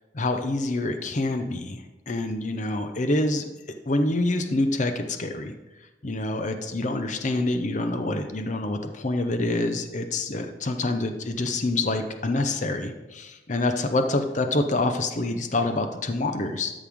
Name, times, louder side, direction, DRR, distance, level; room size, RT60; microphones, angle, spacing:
voice 1, 0.1-3.4 3.9-5.5 6.0-16.7, left 2 dB, 40° left, 7 dB, 0.7 m, -26 dB
13.0 x 5.6 x 3.6 m, 1.1 s
head